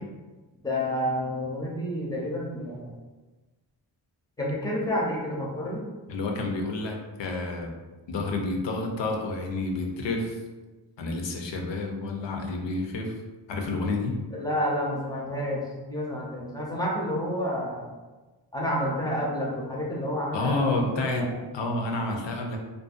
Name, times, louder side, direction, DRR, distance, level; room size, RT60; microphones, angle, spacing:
voice 1, 0.6-2.9 4.4-5.8 14.3-17.9 18.5-21.3, equal, 10° left, -3 dB, 0.6 m, -29 dB
voice 2, 6.1-7.7 8.1-10.4 11.0-13.1 13.5-14.2 20.3-22.6, left 2 dB, 65° left, 2 dB, 0.6 m, -29 dB
2.5 x 2.2 x 2.4 m, 1.2 s
cardioid pair, 65°, 47 cm